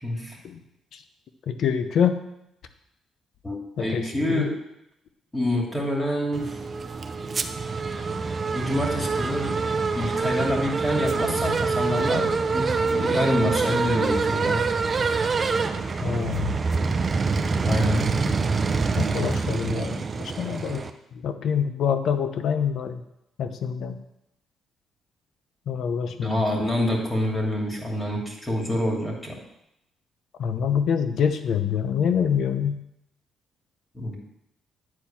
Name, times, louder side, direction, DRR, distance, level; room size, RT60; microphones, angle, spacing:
voice 1, 0.0-0.4 3.4-4.5 5.3-6.5 8.5-9.5 9.9-14.6 17.6-18.2 26.2-29.4 33.9-34.1, left 1 dB, 15° left, -1 dB, 2.8 m, -27 dB
voice 2, 1.5-2.2 3.8-4.5 16.0-16.6 18.3-18.5 19.0-20.8 21.2-23.0 23.4-24.0 25.7-26.4 30.4-32.8, left 7 dB, 70° left, 9 dB, 0.9 m, -26 dB
sound 1, 6.3-20.9, right 4 dB, 35° right, 0.7 m, -25 dB
9.8 x 4.4 x 7.2 m, 0.83 s
cardioid pair, 90°, 0 cm